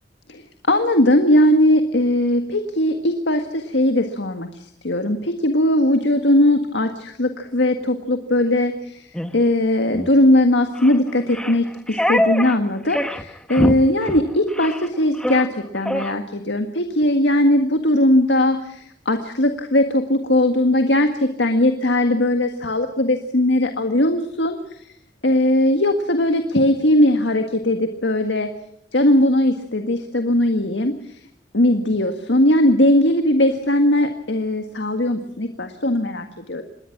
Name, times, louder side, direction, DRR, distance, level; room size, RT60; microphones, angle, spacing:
voice 1, 0.3-9.1 9.3-24.6 25.2-28.5 28.9-31.2 31.5-36.6, left 1 dB, 85° left, 6 dB, 1.8 m, -19 dB
sound 1, 9.1-9.3 9.9-10.1 10.8-11.0 11.3-12.6 12.9-13.2 13.5-13.8 14.0-14.2 14.5-14.9 15.1-15.5 15.9-16.1, equal, 5° left, 1.1 m, -24 dB
27.0 x 21.0 x 6.1 m, 0.70 s
head